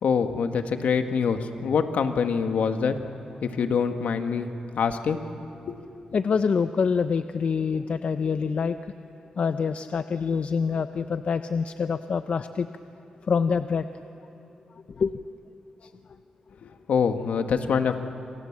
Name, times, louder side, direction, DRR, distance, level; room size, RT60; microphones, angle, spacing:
voice 1, 0.0-2.9 3.4-4.5 4.8-5.2 5.7-5.8 16.6-17.9, left 6 dB, 80° left, 6 dB, 1.8 m, -25 dB
voice 2, 6.1-8.8 9.4-12.7 13.3-13.9 15.0-15.1 15.8-15.9, left 5 dB, 60° left, 10 dB, 0.7 m, -25 dB
28.5 x 27.0 x 7.5 m, 2.9 s
cardioid pair, 70°, 2 cm